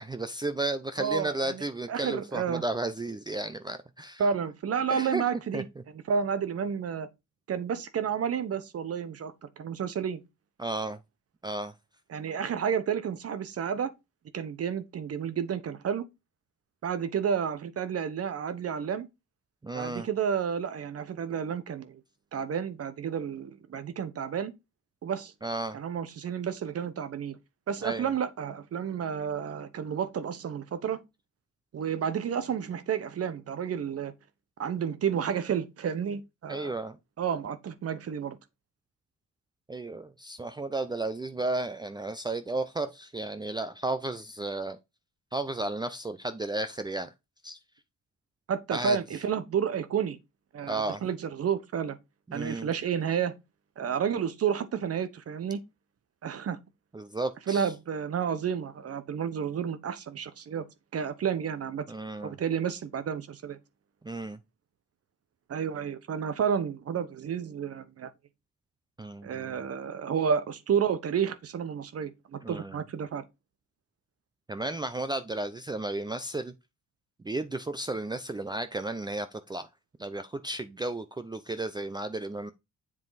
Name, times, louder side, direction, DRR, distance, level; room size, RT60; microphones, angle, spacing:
voice 1, 0.0-4.2 4.9-5.2 5.5-5.6 10.6-11.0 11.4-11.7 19.6-20.1 25.4-25.8 27.8-28.1 36.5-37.0 39.7-44.8 45.3-47.1 47.4-47.6 48.7-49.0 50.7-51.0 52.3-52.7 56.9-57.7 61.9-62.4 64.0-64.4 69.0-69.5 72.4-72.8 74.5-76.5 77.2-79.7 80.0-82.5, right 2 dB, 15° right, 0.6 m, -33 dB
voice 2, 1.0-2.6 4.2-5.6 6.1-7.1 7.5-10.2 12.1-13.9 14.3-16.0 16.8-19.1 19.7-22.0 22.3-24.5 25.0-25.3 25.7-27.4 27.7-31.0 31.7-34.1 34.6-36.7 37.2-38.4 48.5-50.2 50.5-52.0 52.3-53.3 53.8-55.6 56.2-56.6 57.5-60.6 60.9-61.8 62.2-63.6 65.5-68.1 69.2-73.2, right 7 dB, 50° right, 1.0 m, -31 dB
7.6 x 4.4 x 4.0 m
cardioid pair, 90°, 30 cm